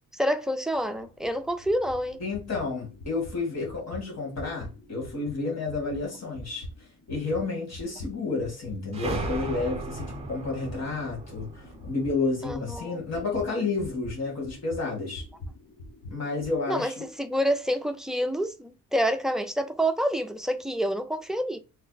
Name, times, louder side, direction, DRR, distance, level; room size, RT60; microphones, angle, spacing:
voice 1, 0.1-2.2 12.4-13.0 16.7-16.9 17.2-21.6, equal, ahead, 0.4 m, -27 dB
sound 1, 0.7-8.8 9.1-16.5, left 1 dB, 70° left, 1.1 m, -44 dB
voice 2, 2.2-6.7 7.1-15.2 16.1-17.0, left 3 dB, 55° left, 1.9 m, -31 dB
sound 2, 8.9-13.4, right 2 dB, 20° right, 0.9 m, -36 dB
3.2 x 2.1 x 3.9 m
cardioid pair, 90°, 32 cm